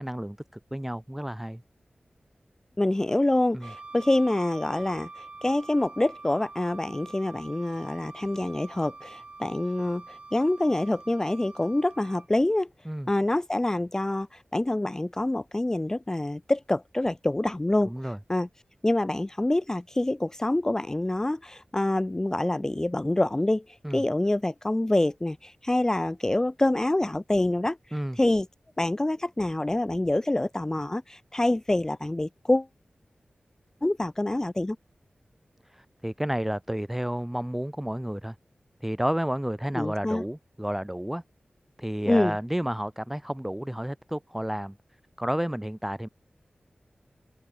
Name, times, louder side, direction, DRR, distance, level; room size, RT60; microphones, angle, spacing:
voice 1, 0.0-1.6 3.5-3.7 12.9-13.1 17.8-18.2 23.8-24.0 27.9-28.2 35.6-38.4 38.8-41.2 41.8-44.8 45.2-46.1, equal, 5° right, 0.8 m, -31 dB
voice 2, 2.8-12.7 13.1-18.5 18.8-28.5 28.8-32.7 33.8-34.8 39.7-40.2 42.1-42.4, left 1 dB, 20° left, 0.5 m, -26 dB
Wind instrument woodwind instrument, 3.6-12.3, right 3 dB, 45° right, 2.8 m, -45 dB
open air
wide cardioid pair, 100°, 3 cm